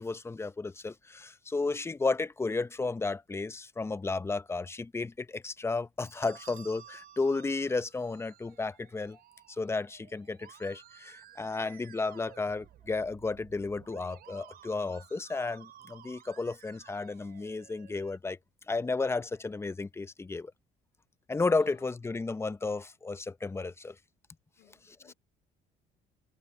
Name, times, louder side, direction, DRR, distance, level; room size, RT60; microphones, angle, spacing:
voice 1, 0.0-9.2 9.6-18.4 18.7-20.5 21.3-23.9 25.1-25.2, left 3 dB, 15° left, 0.7 m, -33 dB
Bell, 6.0-8.7, right 7 dB, 50° right, 7.5 m, -57 dB
Musical instrument, 6.2-18.2, right 12 dB, 65° right, 5.0 m, -55 dB
voice 2, 21.6-21.9 22.2-22.4 24.6-25.1, left 14 dB, 75° left, 3.8 m, -61 dB
cardioid pair, 110°, 17 cm